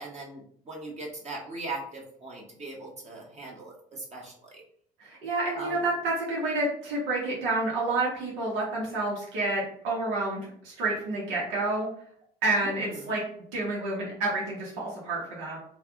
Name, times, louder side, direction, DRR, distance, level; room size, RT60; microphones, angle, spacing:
voice 1, 0.0-4.6 5.6-5.8 12.6-13.2, right 2 dB, 35° right, -1 dB, 1.1 m, -40 dB
voice 2, 5.0-11.9 12.4-13.2 13.5-15.6, right 2 dB, 80° right, -4 dB, 1.2 m, -29 dB
3.3 x 2.4 x 3.6 m, 0.63 s
supercardioid pair, 75°, 19 cm